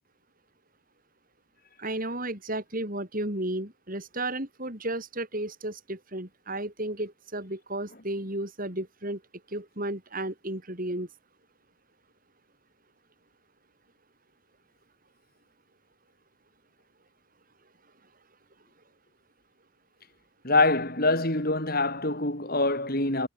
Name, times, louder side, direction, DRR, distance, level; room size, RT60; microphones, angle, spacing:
voice 1, 1.8-9.2 9.5-11.1, right 1 dB, 40° right, 4.3 m, -33 dB
voice 2, 20.4-23.3, left 2 dB, 45° left, 6.3 m, -25 dB
head